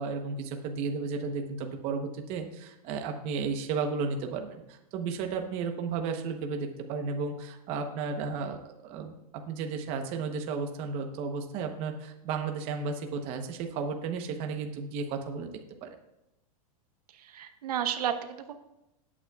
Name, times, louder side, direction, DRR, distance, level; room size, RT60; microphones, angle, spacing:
voice 1, 0.0-15.5 15.8-15.9, right 5 dB, 30° right, 5 dB, 1.0 m, -33 dB
voice 2, 17.2-18.6, right 9 dB, 85° right, 7 dB, 1.1 m, -32 dB
16.0 x 8.6 x 2.4 m, 0.91 s
supercardioid pair, 165°, 19 cm